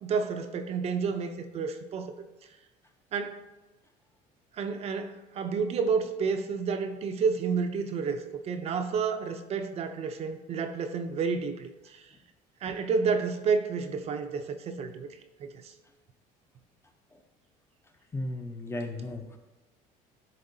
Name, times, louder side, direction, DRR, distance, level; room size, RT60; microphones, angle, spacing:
voice 1, 0.0-2.1 3.1-3.4 4.5-12.0 12.6-15.1 15.4-15.7, right 5 dB, 40° right, 7 dB, 0.5 m, -30 dB
voice 2, 18.1-19.4, left 1 dB, 15° left, 5 dB, 0.5 m, -35 dB
10.5 x 3.6 x 2.7 m, 1.1 s
cardioid pair, 125°, 16 cm